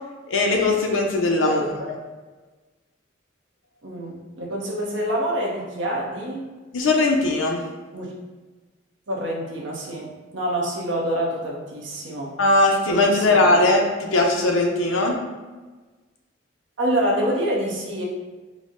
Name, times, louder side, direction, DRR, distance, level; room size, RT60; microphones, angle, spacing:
voice 1, 0.3-1.6 6.7-7.6 12.4-15.2, left 2 dB, 80° left, 1 dB, 0.6 m, -19 dB
voice 2, 1.4-1.9 3.8-6.5 7.9-8.1 9.1-12.3 12.8-13.7 16.8-18.0, right 1 dB, 70° right, -2 dB, 0.8 m, -27 dB
4.0 x 2.0 x 3.7 m, 1.3 s
head